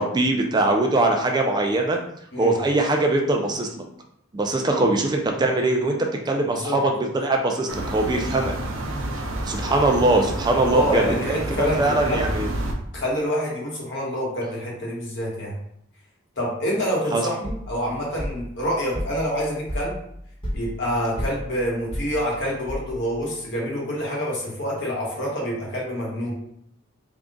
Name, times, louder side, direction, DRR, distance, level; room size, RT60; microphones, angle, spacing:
voice 1, 0.0-2.0 2.4-3.8 4.3-8.5 9.5-12.5 17.1-17.2, right 2 dB, 20° right, 2 dB, 0.4 m, -22 dB
sound 1, 7.7-12.7, right 1 dB, 80° right, 0.6 m, -29 dB
voice 2, 10.6-12.3 12.9-15.5 16.4-20.0 20.5-26.3, equal, 60° left, -4 dB, 1.3 m, -27 dB
sound 2, 17.4-23.3, equal, 25° left, 1.1 m, -34 dB
3.5 x 2.4 x 3.8 m, 0.70 s
head